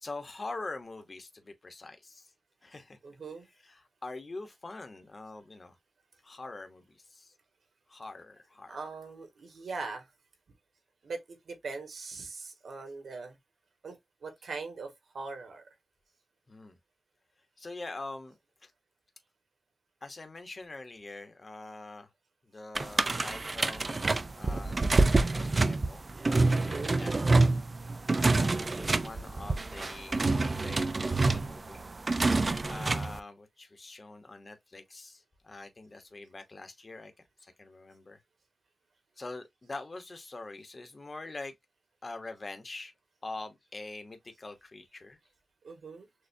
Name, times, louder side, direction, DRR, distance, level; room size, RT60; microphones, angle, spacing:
voice 1, 0.0-2.3 2.6-3.0 3.6-5.8 6.2-7.3 7.9-8.8 16.5-16.8 17.6-18.7 20.0-22.1 22.4-24.8 25.2-26.1 26.5-27.1 28.1-31.9 32.6-37.1 37.4-38.2 39.2-41.5 42.0-42.9 43.2-45.2, left 2 dB, 35° left, 0.9 m, -44 dB
voice 2, 3.0-3.4 8.7-10.1 11.0-13.4 13.8-15.6 26.5-27.0 45.6-46.1, right 4 dB, 85° right, 1.5 m, -41 dB
sound 1, 22.7-33.2, right 3 dB, 35° right, 0.4 m, -27 dB
6.5 x 2.3 x 2.6 m
wide cardioid pair, 135°, 0 cm